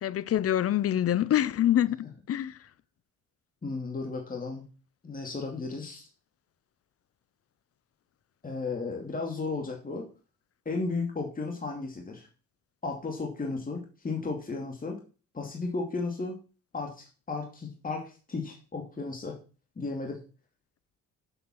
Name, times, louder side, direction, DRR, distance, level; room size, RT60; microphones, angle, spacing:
voice 1, 0.0-2.6, left 11 dB, 50° left, 0.7 m, -26 dB
voice 2, 3.6-4.7 5.0-6.1 8.4-10.1 10.6-12.3 12.8-15.0 15.3-16.4 16.7-19.4 19.8-20.2, left 3 dB, 30° left, 2.6 m, -34 dB
7.8 x 7.6 x 6.3 m
cardioid pair, 90°, 30 cm